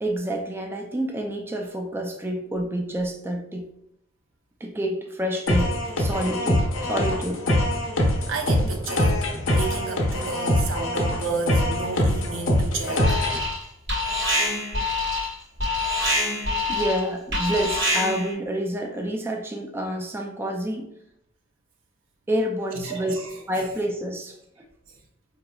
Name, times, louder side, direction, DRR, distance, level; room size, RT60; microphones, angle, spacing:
voice 1, 0.0-3.7 4.6-7.4 16.7-20.9 22.3-24.4, equal, 10° right, 2 dB, 0.3 m, -28 dB
sound 1, 5.5-13.5, left 1 dB, 80° left, 0.8 m, -23 dB
voice 2, 8.3-9.3 9.5-13.2 16.7-16.8 17.4-17.5 22.7-23.7 24.9-25.0, right 4 dB, 75° right, 3 dB, 0.7 m, -32 dB
Alarm, 13.0-13.6 13.9-18.3, left 1 dB, 55° right, 1.5 m, -25 dB
4.8 x 2.9 x 2.3 m, 0.77 s
head